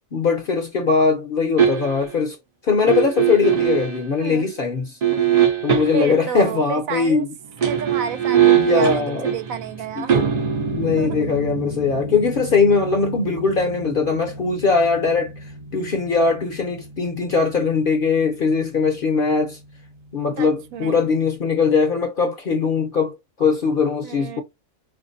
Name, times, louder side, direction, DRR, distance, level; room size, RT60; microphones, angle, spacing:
voice 1, 0.1-2.4 2.6-5.0 5.6-7.3 8.6-9.3 10.0-10.3 10.7-15.3 15.7-19.6 20.1-24.4, left 5 dB, 55° left, 0.6 m, -20 dB
sound 1, 1.6-2.1 2.9-4.0 5.0-6.2 7.4-18.4 18.7-18.8, right 9 dB, 55° right, 0.5 m, -23 dB
voice 2, 5.9-7.3 7.6-10.2 11.0-11.3 20.4-21.1 24.0-24.4, right 8 dB, 80° right, 1.0 m, -31 dB
4.0 x 2.5 x 2.5 m
omnidirectional pair, 1.4 m